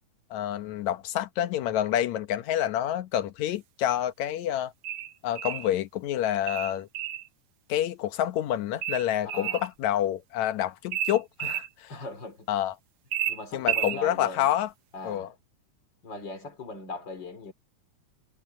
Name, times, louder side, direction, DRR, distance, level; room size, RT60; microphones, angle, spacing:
voice 1, 0.3-4.7 5.2-6.9 7.7-11.9 12.5-12.7 13.5-14.7 15.0-15.3, left 11 dB, 70° left, 2.3 m, -28 dB
sound 1, 4.8-5.7 6.5-7.3 8.8-9.7 10.9-11.7 13.1-14.0, right 11 dB, 70° right, 2.2 m, -31 dB
voice 2, 9.2-9.6 11.9-12.5 13.3-14.5 14.9-15.3 16.0-17.5, left 3 dB, 35° left, 4.1 m, -39 dB
omnidirectional pair, 3.5 m